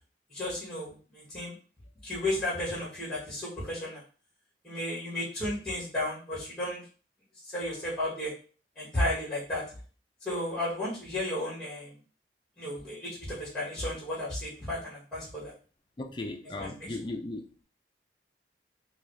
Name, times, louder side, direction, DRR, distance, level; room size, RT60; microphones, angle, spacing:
voice 1, 0.3-1.5 2.0-4.0 4.6-6.8 7.4-8.3 8.7-9.6 10.2-11.9 12.6-15.5 16.6-16.7, left 1 dB, 5° left, -8 dB, 1.7 m, -33 dB
voice 2, 16.0-17.5, left 2 dB, 25° left, 3 dB, 0.4 m, -37 dB
3.9 x 2.7 x 3.2 m, 0.38 s
head